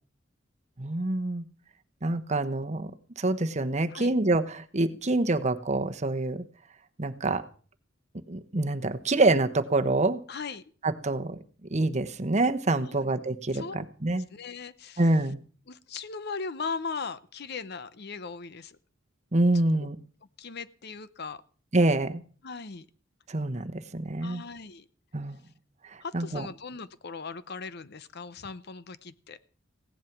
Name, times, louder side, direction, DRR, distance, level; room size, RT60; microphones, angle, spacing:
voice 1, 0.8-1.5 2.0-2.9 3.2-6.5 7.0-7.4 8.3-10.2 10.8-11.4 11.7-14.3 15.0-15.4 19.3-20.0 21.7-22.2 23.3-24.4 25.1-25.5 25.8-26.5, right 2 dB, 35° right, 9 dB, 1.0 m, -26 dB
voice 2, 10.3-10.6 12.9-13.1 13.5-13.8 14.3-15.0 15.7-18.8 20.4-21.4 22.4-22.9 24.2-24.9 26.0-29.4, left 4 dB, 55° left, 15 dB, 0.8 m, -38 dB
16.5 x 11.0 x 6.0 m, 0.41 s
head